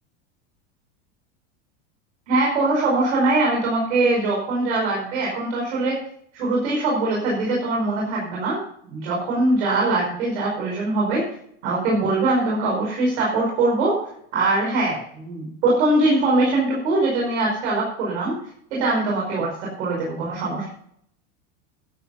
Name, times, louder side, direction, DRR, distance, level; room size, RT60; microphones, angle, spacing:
voice 1, 2.3-6.0 6.3-8.6 8.9-11.2 11.6-14.0 14.3-18.4 18.7-19.5 19.8-20.7, right 2 dB, 70° right, -4 dB, 5.1 m, -22 dB
12.0 x 8.7 x 5.6 m, 0.68 s
supercardioid pair, 160°, 35 cm